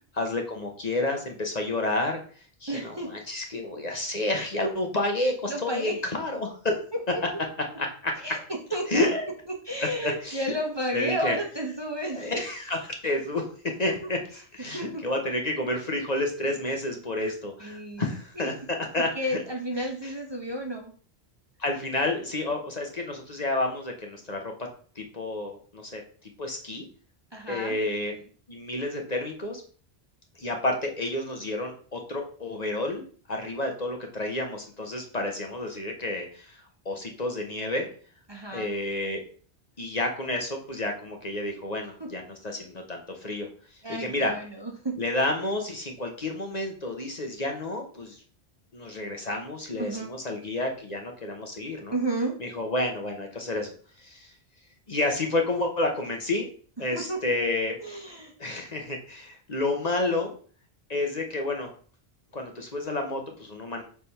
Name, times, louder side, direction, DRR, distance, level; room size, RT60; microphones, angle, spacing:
voice 1, 0.2-2.2 2.6-6.7 7.8-8.1 8.9-9.3 10.0-10.4 10.9-11.4 12.1-13.4 13.8-14.2 14.5-19.4 20.0-20.1 21.6-24.5 25.0-26.0 26.4-26.9 27.5-28.1 28.5-29.6 30.4-33.0 33.3-37.9 38.5-39.2 39.8-43.5 43.9-44.3 45.0-48.2 48.7-51.9 52.4-53.7 54.0-54.3 54.9-56.5 56.8-57.7 58.4-60.3 60.9-61.7 62.3-63.8, left 2 dB, 40° left, 3 dB, 1.0 m, -30 dB
voice 2, 2.7-3.1 5.5-6.0 7.1-7.2 8.2-9.1 9.6-12.3 13.9-14.0 14.7-15.0 17.6-18.5 19.1-20.9 27.3-27.8 38.3-38.7 42.0-42.1 43.8-45.0 49.8-50.1 51.9-52.3 56.9-57.2 57.8-58.3, right 1 dB, 25° right, 1 dB, 0.8 m, -32 dB
4.9 x 3.5 x 5.6 m, 0.44 s
omnidirectional pair, 1.1 m